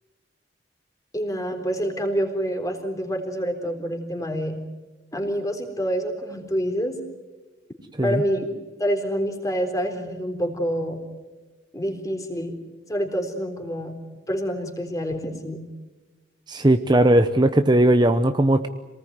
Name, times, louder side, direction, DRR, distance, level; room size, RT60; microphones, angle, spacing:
voice 1, 1.1-4.6 5.1-7.0 8.0-8.5 8.8-11.0 11.7-12.5 12.9-13.9 14.3-15.6, equal, 15° left, 4 dB, 3.8 m, -27 dB
voice 2, 16.5-18.7, right 1 dB, 20° right, 8 dB, 0.9 m, -18 dB
27.0 x 19.5 x 9.5 m, 1.2 s
head